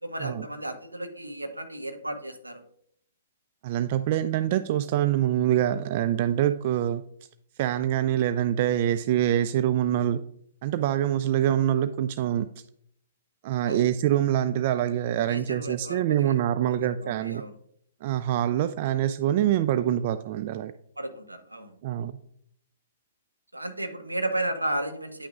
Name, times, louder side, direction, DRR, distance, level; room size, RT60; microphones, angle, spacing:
voice 1, 0.0-2.6 13.6-13.9 15.3-17.6 21.0-21.8 23.5-25.3, right 1 dB, 85° right, 7 dB, 0.9 m, -34 dB
voice 2, 3.6-7.0 7.6-10.2 10.6-12.5 13.4-17.4 18.0-20.7 21.8-22.2, right 11 dB, 40° right, 12 dB, 0.3 m, -25 dB
9.6 x 5.9 x 2.4 m, 0.68 s
figure-of-eight pair, 115°, 0 cm